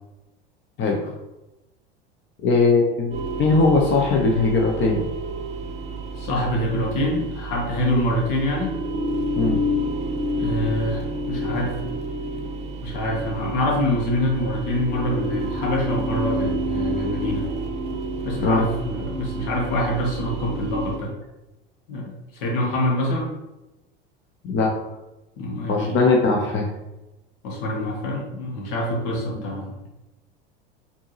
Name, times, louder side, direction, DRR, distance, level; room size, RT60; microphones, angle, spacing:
voice 1, 0.8-1.1 2.4-5.1 9.4-9.6 18.4-18.6 24.4-24.7 25.7-26.7, left 3 dB, 40° left, 0 dB, 0.7 m, -20 dB
sound 1, 3.1-21.0, right 1 dB, 20° right, 0.6 m, -29 dB
voice 2, 6.2-8.8 10.4-12.1 12.8-17.5 18.2-21.1 21.9-23.3 25.4-26.0 27.4-29.8, left 1 dB, 65° left, 0 dB, 1.3 m, -25 dB
4.4 x 2.7 x 3.0 m, 0.98 s
hypercardioid pair, 85°, 30 cm